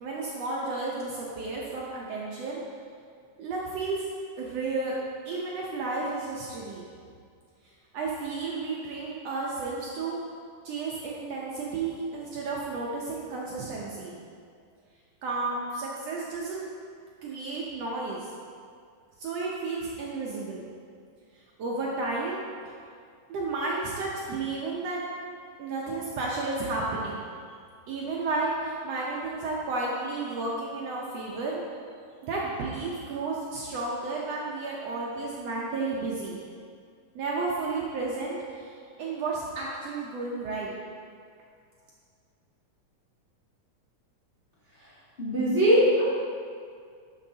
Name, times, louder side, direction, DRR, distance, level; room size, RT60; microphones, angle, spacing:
voice 1, 0.0-2.6 3.4-4.0 4.4-5.0 5.3-6.9 7.9-10.2 10.6-14.2 15.2-16.7 17.2-18.2 19.2-20.7 21.6-22.4 22.7-22.8 23.3-25.0 25.6-27.1 27.9-31.6 32.2-36.4 37.2-40.7, right 3 dB, 70° right, -4 dB, 1.7 m, -32 dB
voice 2, 45.2-46.0, equal, 25° left, -9 dB, 1.3 m, -21 dB
12.0 x 6.3 x 2.8 m, 2.2 s
omnidirectional pair, 3.5 m